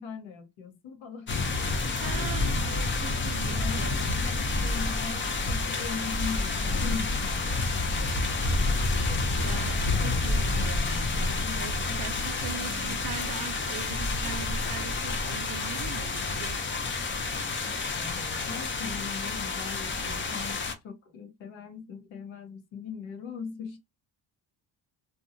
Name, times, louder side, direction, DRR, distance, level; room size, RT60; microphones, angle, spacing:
voice 1, 0.0-2.8 3.5-8.6 9.1-9.6 9.9-12.0 12.5-13.0 15.1-23.8, left 5 dB, 80° left, 0.9 m, -41 dB
sound 1, 1.3-20.7, left 3 dB, 25° left, 0.5 m, -29 dB
voice 2, 2.0-4.2 9.4-10.5 11.5-11.7 12.0-16.6, right 9 dB, 50° right, 0.5 m, -41 dB
2.7 x 2.3 x 2.5 m
cardioid pair, 110°, 47 cm